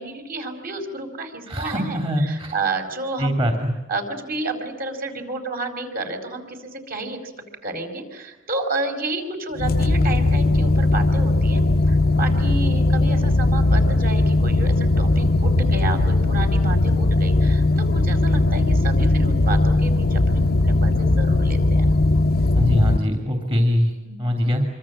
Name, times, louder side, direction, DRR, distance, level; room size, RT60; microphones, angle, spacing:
voice 1, 0.0-2.0 2.3-3.3 3.9-7.3 7.6-21.9 24.0-24.3, right 3 dB, 50° right, 5 dB, 5.0 m, -31 dB
voice 2, 1.5-2.6 3.2-3.7 22.5-23.9 24.2-24.7, equal, 30° right, 2 dB, 3.0 m, -22 dB
sound 1, 9.6-23.0, left 2 dB, 50° left, 0.8 m, -18 dB
26.0 x 25.0 x 7.5 m, 1.2 s
head